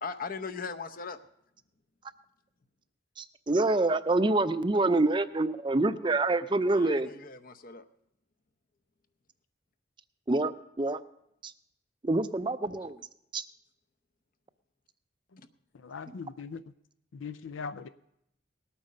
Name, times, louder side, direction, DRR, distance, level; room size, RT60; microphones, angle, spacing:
voice 1, 0.0-1.2 6.7-7.8 15.4-15.5, left 5 dB, 45° left, 9 dB, 0.7 m, -39 dB
voice 2, 3.2-7.1 10.3-10.5 10.8-11.0 11.4-11.5 12.0-13.0 13.3-13.4, right 2 dB, 25° right, 12 dB, 0.5 m, -26 dB
voice 3, 15.7-16.6 17.1-17.9, left 5 dB, 80° left, 13 dB, 0.5 m, -40 dB
19.0 x 8.8 x 5.4 m, 0.78 s
head